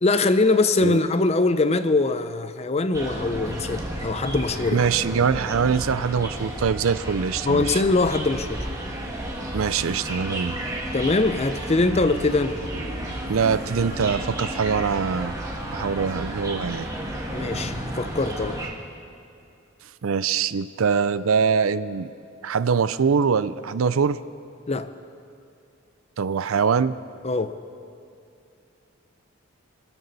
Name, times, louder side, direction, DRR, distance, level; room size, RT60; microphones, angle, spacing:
voice 1, 0.0-4.9 7.4-8.7 10.9-12.6 17.3-18.6 24.7-24.9 27.2-27.5, left 3 dB, 30° left, 11 dB, 0.6 m, -22 dB
sound 1, 2.9-18.7, right 1 dB, 15° right, 1.9 m, -32 dB
voice 2, 4.7-7.8 9.5-10.6 13.3-15.3 15.7-16.9 20.0-22.1 22.4-24.2 26.2-27.0, right 6 dB, 85° right, 15 dB, 0.5 m, -23 dB
Boom, 11.8-16.2, right 1 dB, 65° right, 2.8 m, -42 dB
25.5 x 13.0 x 4.1 m, 2.6 s
head